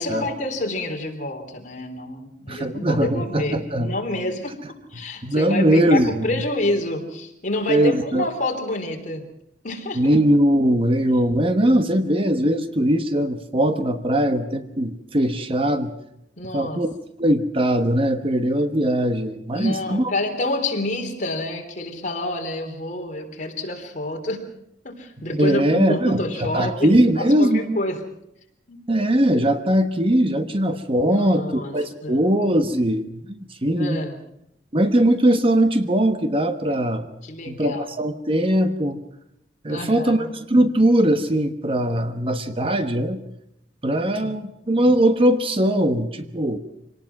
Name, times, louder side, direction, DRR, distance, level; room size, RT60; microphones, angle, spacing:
voice 1, 0.0-9.2 9.6-10.2 16.4-16.8 19.5-24.5 24.8-28.0 28.7-28.8 31.1-31.8 32.0-32.3 33.7-34.2 37.2-37.9 39.7-40.3 44.1-44.4, left 1 dB, 45° left, 3 dB, 3.5 m, -28 dB
voice 2, 2.5-3.9 5.2-6.4 7.7-8.3 10.0-15.9 16.5-16.9 17.2-20.1 25.3-27.8 28.9-34.0 34.7-37.1 37.5-39.0 39.6-43.2 43.8-46.6, right 1 dB, 30° right, 9 dB, 1.2 m, -20 dB
25.0 x 18.5 x 6.0 m, 0.79 s
head